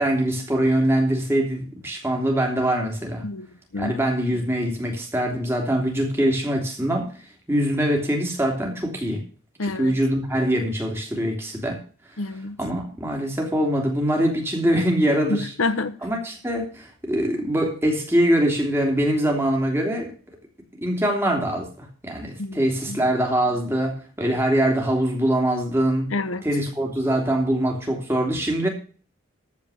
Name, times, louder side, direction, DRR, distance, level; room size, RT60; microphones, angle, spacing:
voice 1, 0.0-3.2 3.8-7.1 7.5-9.2 9.6-11.8 12.6-15.5 16.0-20.1 20.8-26.1 26.4-28.7, right 1 dB, 10° right, 3.0 m, -23 dB
voice 2, 9.6-9.9 12.2-12.6 15.3-15.9 22.4-22.6 22.9-23.0 26.1-26.4, left 3 dB, 85° left, 1.1 m, -27 dB
14.5 x 5.1 x 8.3 m
head